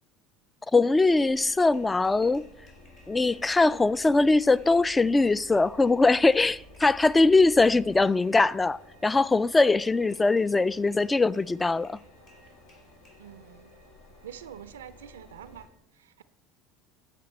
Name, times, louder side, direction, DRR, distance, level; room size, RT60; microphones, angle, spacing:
voice 1, 0.7-2.4 3.1-12.0, left 3 dB, 15° left, 0.3 m, -22 dB
sound 1, 0.8-8.5 9.0-9.2 9.8-13.2, left 1 dB, 60° left, 3.6 m, -60 dB
sound 2, 1.0-15.7, left 1 dB, 75° left, 1.9 m, -53 dB
voice 2, 13.2-13.7 14.2-16.2, right 9 dB, 80° right, 0.4 m, -46 dB
14.0 x 5.3 x 4.2 m
hypercardioid pair, 70°, 0 cm